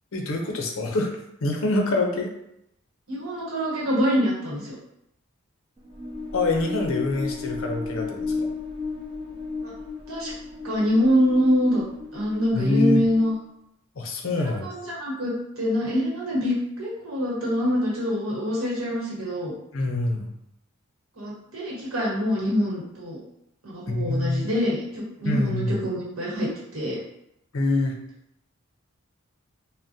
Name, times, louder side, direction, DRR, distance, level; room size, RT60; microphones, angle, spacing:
voice 1, 0.1-1.1 1.4-2.3 6.3-8.5 12.5-13.0 14.0-14.7 19.7-20.3 23.9-24.5 25.2-25.8 27.5-28.0, left 2 dB, 70° left, 2 dB, 0.6 m, -25 dB
voice 2, 3.1-4.8 9.6-9.7 10.1-10.3 10.6-11.8 12.1-13.3 14.4-19.5 21.2-23.2 23.6-27.0, equal, 80° right, -4 dB, 1.2 m, -25 dB
sound 1, 5.8-13.5, left 4 dB, 25° right, 0.4 m, -34 dB
3.5 x 2.1 x 2.7 m, 0.79 s
head